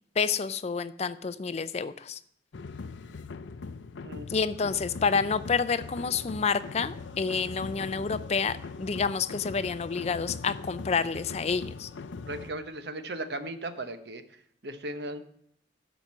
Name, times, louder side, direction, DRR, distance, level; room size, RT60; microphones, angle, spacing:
voice 1, 0.2-2.2 4.3-11.9, left 5 dB, 35° left, 14 dB, 0.4 m, -29 dB
sound 1, 2.5-12.5, left 4 dB, 90° left, 0.5 m, -41 dB
voice 2, 12.3-15.2, right 1 dB, 60° right, 10 dB, 1.0 m, -37 dB
11.5 x 5.2 x 7.3 m, 0.69 s
head